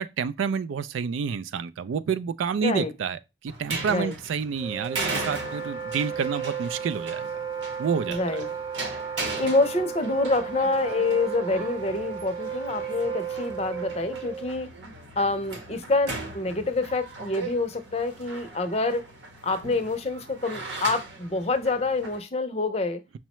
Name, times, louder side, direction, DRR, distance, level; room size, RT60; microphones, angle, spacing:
voice 1, 0.0-7.3 7.8-8.5, right 6 dB, 90° right, 0.3 m, -29 dB
voice 2, 2.6-2.9 3.9-4.1 8.1-8.5 9.4-14.7 15.2-19.0 19.4-23.0, left 3 dB, 35° left, 0.5 m, -27 dB
sound 1, 3.5-22.2, right 3 dB, 70° right, 0.8 m, -38 dB
Wind instrument woodwind instrument, 4.6-14.5, right 7 dB, 15° right, 0.7 m, -34 dB
5.5 x 2.1 x 2.9 m
head